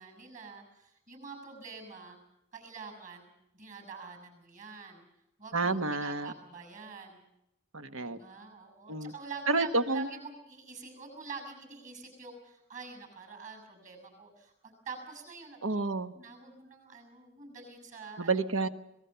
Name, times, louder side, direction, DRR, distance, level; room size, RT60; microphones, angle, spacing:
voice 1, 0.0-2.2 2.5-3.3 3.5-5.0 5.4-7.2 8.1-15.6 16.1-18.3, right 5 dB, 40° right, 7 dB, 6.8 m, -46 dB
voice 2, 5.5-6.3 7.7-8.2 8.9-9.1 9.5-10.1 15.6-16.1 18.2-18.7, right 3 dB, 90° right, 10 dB, 1.3 m, -29 dB
26.0 x 19.0 x 6.9 m, 0.87 s
head